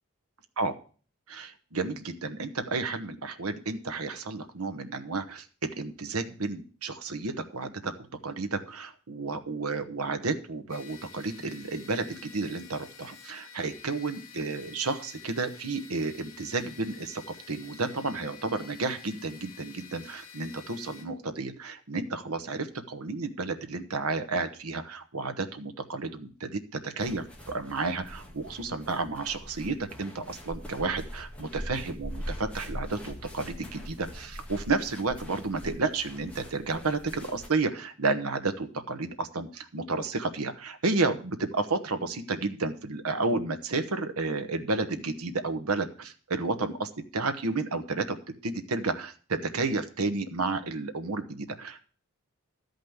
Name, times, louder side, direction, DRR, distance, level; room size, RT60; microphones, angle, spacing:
voice 1, 1.3-7.9 8.2-48.2 48.4-51.8, right 3 dB, 80° right, 8 dB, 1.1 m, -31 dB
sound 1, 10.7-21.0, left 7 dB, 65° left, 2.2 m, -49 dB
sound 2, 27.0-37.5, equal, 5° left, 1.5 m, -42 dB
12.0 x 5.3 x 7.9 m, 0.40 s
head